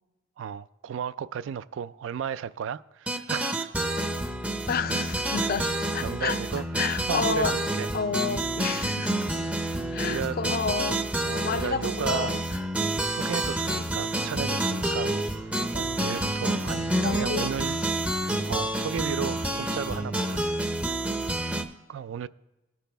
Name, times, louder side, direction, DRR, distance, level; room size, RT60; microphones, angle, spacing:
voice 1, 0.4-3.8 5.6-6.6 7.0-7.9 10.0-10.4 11.2-12.4 13.1-17.8 18.2-20.7 21.3-21.6 21.9-22.3, right 8 dB, 70° right, 0.3 m, -35 dB
sound 1, 3.1-21.6, right 1 dB, 5° right, 0.5 m, -28 dB
voice 2, 4.7-6.4 6.8-7.6 7.9-9.3 9.9-11.0 11.4-12.4 17.0-17.5, left 5 dB, 45° left, 0.4 m, -30 dB
17.5 x 6.0 x 3.4 m
head